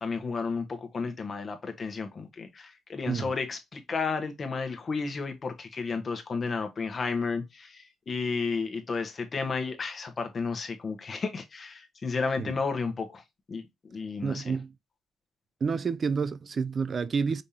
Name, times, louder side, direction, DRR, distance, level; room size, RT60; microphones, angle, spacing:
voice 1, 0.0-13.2 13.5-13.6 13.9-14.5, left 4 dB, 40° left, 1.0 m, -32 dB
voice 2, 14.2-14.7 15.6-17.4, right 5 dB, 45° right, 0.4 m, -29 dB
5.3 x 3.5 x 2.7 m
cardioid pair, 90°, 0 cm